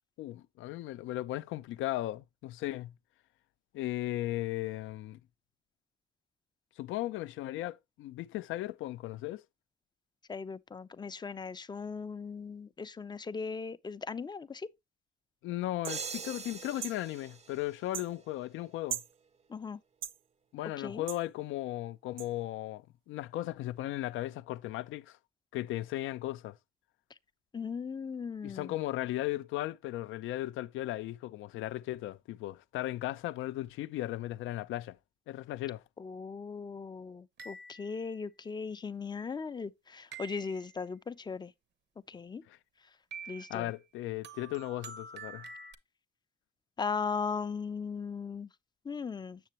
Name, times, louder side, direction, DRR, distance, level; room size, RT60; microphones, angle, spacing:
voice 1, 0.2-2.9 3.7-5.2 6.8-9.4 15.4-19.0 20.5-25.2 25.5-26.5 28.4-35.0 35.3-35.8 42.5-42.6 43.5-45.5, left 15 dB, 85° left, 0.4 m, -36 dB
voice 2, 10.3-14.7 19.5-19.8 20.8-21.0 27.5-28.7 36.0-41.5 42.1-42.4 43.3-43.7 46.8-48.5 48.9-49.4, left 5 dB, 20° left, 0.4 m, -38 dB
sound 1, 15.8-16.0 16.8-17.0 17.9-18.1 18.9-19.1 20.0-20.2 21.1-21.2 22.2-22.3, right 10 dB, 85° right, 0.5 m, -38 dB
sound 2, 15.9-18.5, right 5 dB, 35° right, 0.5 m, -43 dB
sound 3, 37.4-38.2 40.1-40.8 43.1-43.7 44.2-45.7, right 4 dB, 60° right, 0.8 m, -47 dB
7.6 x 6.6 x 2.9 m
cardioid pair, 90°, 20 cm